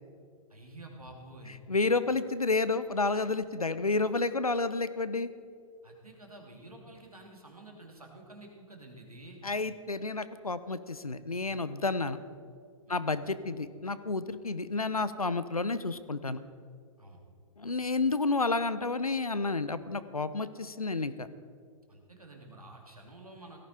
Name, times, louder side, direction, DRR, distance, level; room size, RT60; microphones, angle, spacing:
voice 1, 0.5-1.6 5.8-9.4 12.9-13.0 17.0-17.2 21.9-23.6, right 1 dB, 90° right, 1 dB, 2.9 m, -50 dB
voice 2, 1.5-5.3 9.4-12.2 12.9-16.4 17.6-21.3, left 3 dB, 90° left, 14 dB, 0.8 m, -30 dB
17.5 x 14.0 x 4.3 m, 2.3 s
figure-of-eight pair, 115°, 18 cm